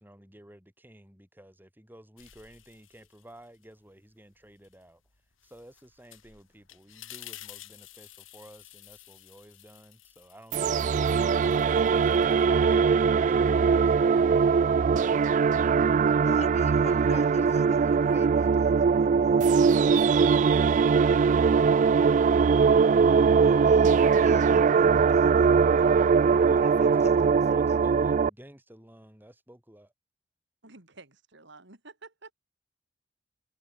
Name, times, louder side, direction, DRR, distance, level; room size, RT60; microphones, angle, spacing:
voice 1, 0.0-5.0 5.4-14.1 26.3-27.1 27.5-29.9, right 1 dB, 10° right, 4.8 m, -53 dB
sound 1, 2.2-3.7 4.1-12.8, left 13 dB, 90° left, 6.6 m, -51 dB
sound 2, 10.5-28.3, right 5 dB, 40° right, 0.3 m, -21 dB
voice 2, 16.2-19.5 23.4-27.8, left 2 dB, 35° left, 1.9 m, -45 dB
voice 3, 30.6-32.3, right 3 dB, 65° right, 3.9 m, -50 dB
head